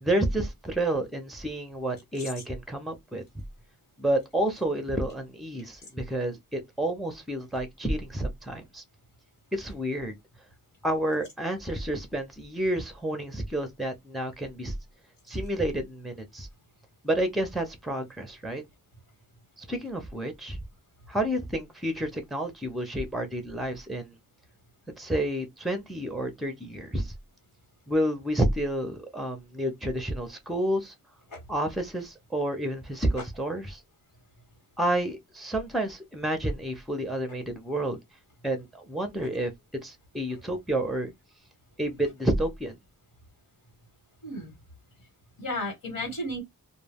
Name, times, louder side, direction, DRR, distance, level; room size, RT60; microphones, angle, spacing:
voice 1, 0.0-3.2 4.0-8.8 9.5-10.2 10.8-14.7 15.3-16.5 17.0-18.6 19.6-20.6 21.1-24.1 25.0-27.1 27.9-30.9 31.5-33.8 34.8-38.0 38.4-39.5 39.8-41.1 41.8-42.7, right 1 dB, ahead, 0.5 m, -30 dB
voice 2, 44.2-44.5 45.4-46.4, left 1 dB, 75° left, 1.3 m, -33 dB
2.2 x 2.2 x 3.3 m
wide cardioid pair, 160°, 34 cm